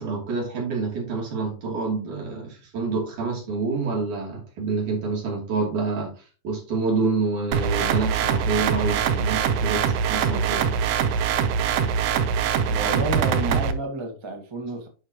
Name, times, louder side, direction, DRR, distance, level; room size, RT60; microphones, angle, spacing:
voice 1, 0.0-6.1 6.4-10.6, right 4 dB, 90° right, 4.4 m, -27 dB
sound 1, 7.5-13.7, right 7 dB, 70° right, 1.7 m, -23 dB
voice 2, 12.7-14.9, right 2 dB, 35° right, 0.4 m, -30 dB
11.0 x 4.7 x 2.9 m
omnidirectional pair, 3.4 m